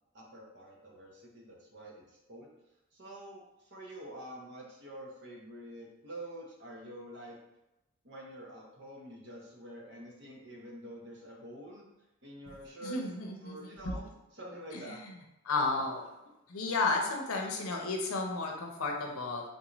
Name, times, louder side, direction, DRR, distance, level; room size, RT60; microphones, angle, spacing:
voice 1, 0.1-2.5 2.9-7.4 8.0-11.9 12.2-13.1 13.4-15.0, right 1 dB, 55° right, -2 dB, 0.8 m, -47 dB
voice 2, 12.8-13.6 13.8-13.9 14.7-14.8 15.4-16.1 16.5-19.4, left 3 dB, 90° left, 1 dB, 0.6 m, -32 dB
3.8 x 2.6 x 2.9 m, 0.92 s
head